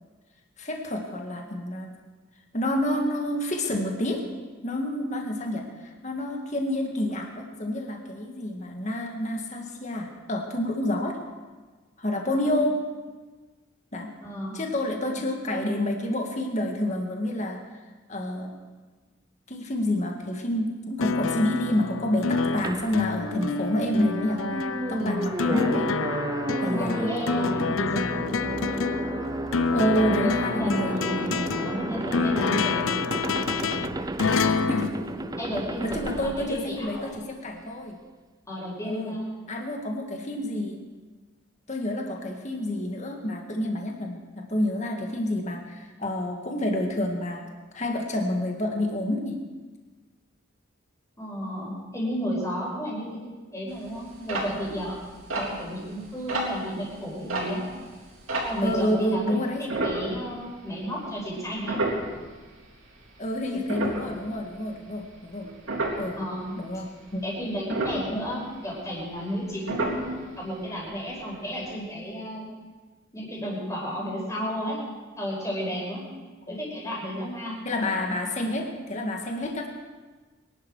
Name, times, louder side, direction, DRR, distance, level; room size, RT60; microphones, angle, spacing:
voice 1, 0.6-1.9 2.5-4.2 4.6-11.2 12.0-12.8 13.9-14.1 14.5-17.6 18.1-18.5 19.5-24.4 24.9-25.9 26.6-27.1 29.7-31.0 34.3-35.1 35.8-38.0 38.8-39.1 39.5-40.8 41.7-47.4 47.7-49.4 58.6-59.6 63.2-65.5 66.0-66.2 66.6-67.3 76.5-76.6 77.7-79.7, left 1 dB, 35° left, 2 dB, 1.9 m, -28 dB
voice 2, 12.2-12.6 14.2-14.5 26.7-28.3 29.7-32.9 35.4-37.1 38.5-39.3 51.2-53.2 53.5-55.0 55.3-57.7 58.4-61.8 66.2-66.5 67.2-72.5 73.1-74.8 75.2-76.1 76.5-77.6, equal, 15° left, -4 dB, 5.2 m, -32 dB
sound 1, 21.0-35.9 37.1-37.2, left 5 dB, 80° left, 0.6 m, -28 dB
sound 2, 22.6-37.2, right 2 dB, 20° right, 0.4 m, -32 dB
sound 3, 53.7-58.9 59.7-60.7 61.0-61.2 61.6-62.9 63.3-66.2 66.6-67.1 67.4-69.4 69.7-70.5 70.8-70.9 71.1-71.3 71.7-71.8, right 2 dB, 75° right, 3.9 m, -31 dB
24.0 x 11.5 x 4.8 m, 1.3 s
head